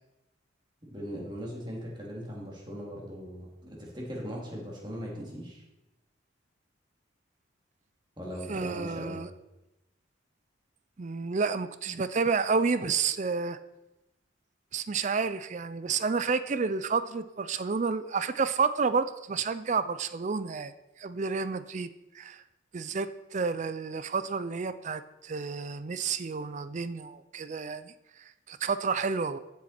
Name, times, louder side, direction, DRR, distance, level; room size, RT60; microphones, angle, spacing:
voice 1, 0.8-5.6 8.2-9.2, equal, 25° right, -3 dB, 2.7 m, -39 dB
voice 2, 8.5-9.3 11.0-13.6 14.7-20.7 21.0-21.9 22.1-22.4 22.7-29.4, right 5 dB, 40° right, 13 dB, 0.4 m, -30 dB
14.0 x 7.2 x 4.3 m, 0.96 s
head